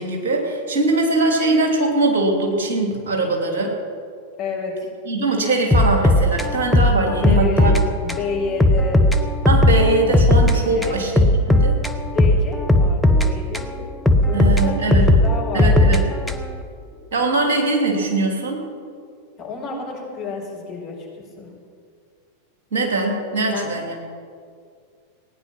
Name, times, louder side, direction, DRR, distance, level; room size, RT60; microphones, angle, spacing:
voice 1, 0.0-3.7 5.1-7.7 9.5-11.1 11.4-11.8 14.3-15.1 15.5-16.0 17.1-18.6 22.7-23.9, right 2 dB, 60° right, 1 dB, 2.9 m, -21 dB
voice 2, 4.4-4.9 7.2-7.7 8.0-9.1 10.6-11.0 12.1-13.9 14.2-16.0 19.4-21.5 23.4-23.7, left 4 dB, 35° left, -3 dB, 4.7 m, -30 dB
sound 1, 5.7-8.2 8.6-10.6 10.8-13.7 14.1-16.6, left 1 dB, ahead, 1.0 m, -16 dB
17.5 x 10.0 x 6.0 m, 2.2 s
figure-of-eight pair, 90°, 0 cm